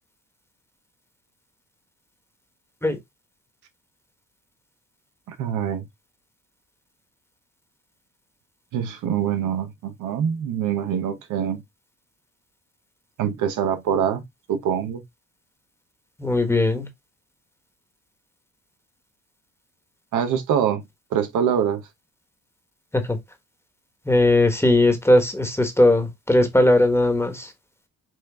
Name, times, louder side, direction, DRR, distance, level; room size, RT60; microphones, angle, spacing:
voice 1, 5.3-5.9 8.7-11.6 13.2-15.0 20.1-20.8 21.1-21.9, right 8 dB, 85° right, 1.0 m, -24 dB
voice 2, 16.2-16.9 22.9-23.2 24.1-27.5, left 1 dB, 10° left, 1.3 m, -19 dB
6.2 x 2.4 x 3.5 m
cardioid pair, 90°, 30 cm